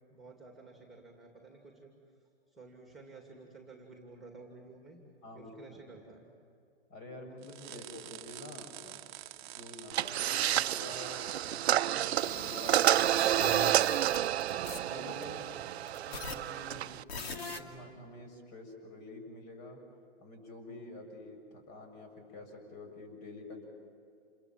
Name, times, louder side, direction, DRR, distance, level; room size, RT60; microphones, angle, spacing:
voice 1, 0.1-1.9 2.5-5.0 5.3-6.3 15.2-15.6, right 3 dB, ahead, 2 dB, 2.5 m, -52 dB
voice 2, 5.2-5.8 6.9-14.1 14.7-15.5 16.1-19.8 20.2-23.6, left 2 dB, 45° left, 4 dB, 7.0 m, -48 dB
sound 1, 7.4-14.6, right 15 dB, 45° right, 0.8 m, -49 dB
sound 2, 9.9-17.0, right 12 dB, 80° right, 0.6 m, -30 dB
sound 3, 12.2-14.8 15.2-15.3 15.9-16.3 16.7-16.8 17.1-17.6, left 4 dB, 70° left, 2.5 m, -41 dB
28.0 x 22.0 x 7.5 m, 2.5 s
hypercardioid pair, 145°, 32 cm